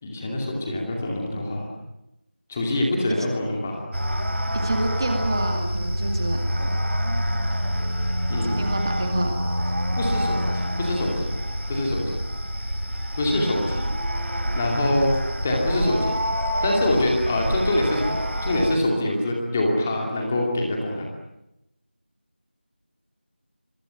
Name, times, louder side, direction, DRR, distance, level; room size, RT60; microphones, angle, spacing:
voice 1, 0.0-1.7 2.5-3.9 8.3-8.6 10.0-11.3 11.7-12.2 13.1-13.9 14.2-15.1 15.4-16.1 16.6-21.0, left 1 dB, 10° left, 0 dB, 2.5 m, -25 dB
sound 1, 3.9-18.8, equal, 80° right, 4.8 m, -26 dB
voice 2, 4.6-6.7 8.4-9.4, right 1 dB, 20° right, 4 dB, 2.2 m, -28 dB
25.5 x 24.5 x 9.2 m, 0.89 s
figure-of-eight pair, 175°, 6 cm